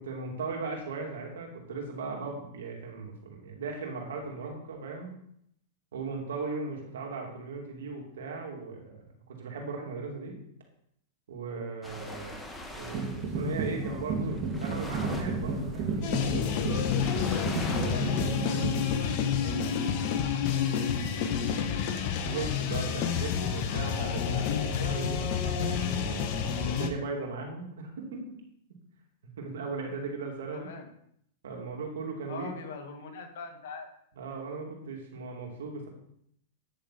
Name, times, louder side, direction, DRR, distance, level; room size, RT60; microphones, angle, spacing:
voice 1, 0.0-5.1 5.9-10.4 11.3-12.5 12.7-16.7 22.3-26.3 26.6-28.3 29.2-30.7 31.4-32.5 34.2-35.9, right 4 dB, 80° right, 1 dB, 2.8 m, -38 dB
sound 1, 11.8-18.9, left 1 dB, 10° left, 1.3 m, -43 dB
sound 2, 12.9-18.8, right 3 dB, 40° right, 2.2 m, -32 dB
sound 3, 16.0-26.9, left 7 dB, 50° left, 1.2 m, -29 dB
voice 2, 16.5-21.2 30.5-30.9 32.3-33.9, left 5 dB, 65° left, 4 dB, 2.0 m, -43 dB
10.0 x 6.9 x 4.3 m, 0.71 s
hypercardioid pair, 120°, 0 cm